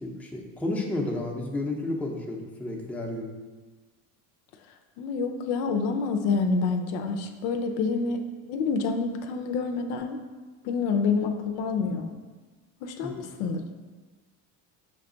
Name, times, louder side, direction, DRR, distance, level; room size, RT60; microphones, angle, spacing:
voice 1, 0.0-3.3 13.0-13.2, left 2 dB, 5° left, -1 dB, 0.6 m, -31 dB
voice 2, 5.0-10.2 10.6-12.1 12.8-13.6, left 4 dB, 80° left, 6 dB, 0.6 m, -27 dB
5.9 x 2.3 x 3.8 m, 1.3 s
supercardioid pair, 95°, 42 cm